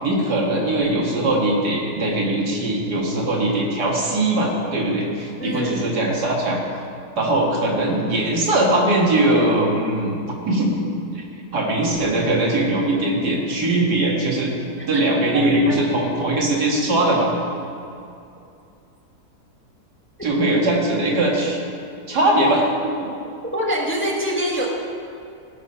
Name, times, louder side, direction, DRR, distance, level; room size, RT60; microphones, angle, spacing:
voice 1, 0.0-6.6 7.1-10.2 10.5-10.7 11.1-11.2 11.5-14.5 14.9-17.3 20.2-21.6 22.1-23.1, right 1 dB, 90° right, -2 dB, 2.5 m, -20 dB
voice 2, 5.4-6.0 14.8-15.0 15.3-15.8 23.5-24.7, right 1 dB, 10° left, -2 dB, 1.2 m, -25 dB
17.0 x 6.4 x 5.6 m, 2.5 s
omnidirectional pair, 1.7 m